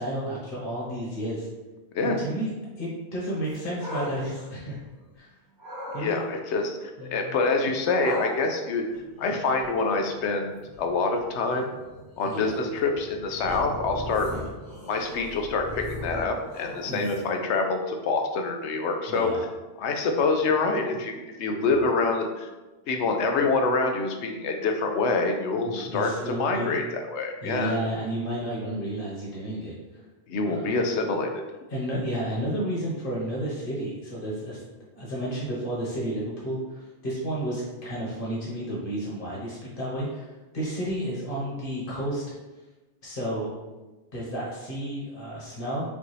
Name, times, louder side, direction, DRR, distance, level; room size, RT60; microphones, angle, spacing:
voice 1, 0.0-1.5 2.0-2.5 2.8-4.8 5.1-5.3 5.9-6.2 7.0-7.3 12.2-12.6 14.3-14.5 16.8-17.2 19.1-19.4 21.6-21.8 25.6-26.8 27.4-29.7 30.5-30.8 31.7-34.6 34.9-42.2 43.0-43.5 44.1-45.8, right 1 dB, 50° left, -5 dB, 1.5 m, -32 dB
sound 1, 3.4-5.2 5.6-6.1 8.0-17.4, equal, 20° right, 1.2 m, -39 dB
voice 2, 6.0-8.8 9.2-11.7 12.2-14.3 14.9-19.3 19.8-22.5 22.9-26.1 26.4-27.7 30.3-31.3, left 3 dB, 85° left, 4 dB, 0.9 m, -26 dB
5.2 x 2.6 x 3.2 m, 1.2 s
omnidirectional pair, 1.1 m